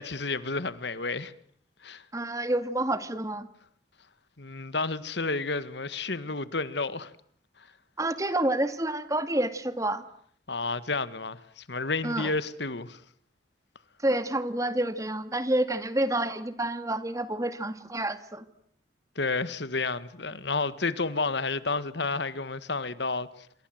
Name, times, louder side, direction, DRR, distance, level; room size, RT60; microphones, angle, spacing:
voice 1, 0.0-1.3 1.8-2.0 4.4-7.1 7.6-7.7 10.5-13.0 19.2-23.3, left 3 dB, 65° left, 1.7 m, -31 dB
voice 2, 2.1-3.5 8.0-10.0 12.0-12.3 14.0-18.5, right 1 dB, 15° right, 2.1 m, -28 dB
28.0 x 26.0 x 7.9 m
head